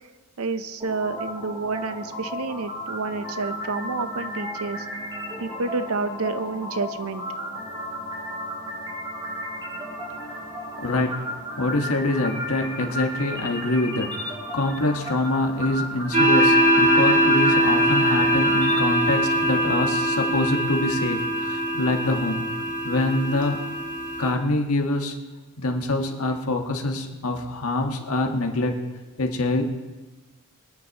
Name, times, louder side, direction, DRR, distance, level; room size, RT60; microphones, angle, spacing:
voice 1, 0.4-4.9 5.4-7.2 21.7-22.1, right 3 dB, 85° right, 11 dB, 0.8 m, -29 dB
sound 1, 0.8-18.8, equal, 20° right, 5.1 m, -34 dB
voice 2, 10.2-22.5 22.8-23.7 24.2-25.1 25.6-28.8 29.2-29.6, left 2 dB, 85° left, 3 dB, 1.5 m, -25 dB
sound 2, 16.1-24.3, equal, 40° right, 2.2 m, -22 dB
25.5 x 9.8 x 3.0 m, 1.2 s
head